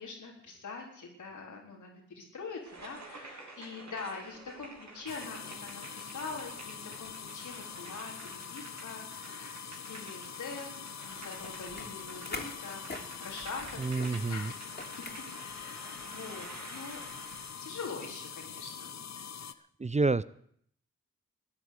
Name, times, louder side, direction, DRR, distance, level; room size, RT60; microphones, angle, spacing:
voice 1, 0.0-14.5 15.3-17.0 17.6-19.0, left 4 dB, 85° left, 0 dB, 3.9 m, -44 dB
sound 1, 2.6-17.7, right 2 dB, 70° right, 4.1 m, -50 dB
sound 2, 5.1-19.5, left 7 dB, 65° left, 0.9 m, -44 dB
sound 3, 11.4-16.2, left 2 dB, 35° left, 3.2 m, -46 dB
voice 2, 13.8-14.5 19.8-20.2, right 3 dB, 25° right, 17 dB, 0.6 m, -28 dB
14.5 x 9.6 x 8.3 m, 0.67 s
cardioid pair, 45°, 30 cm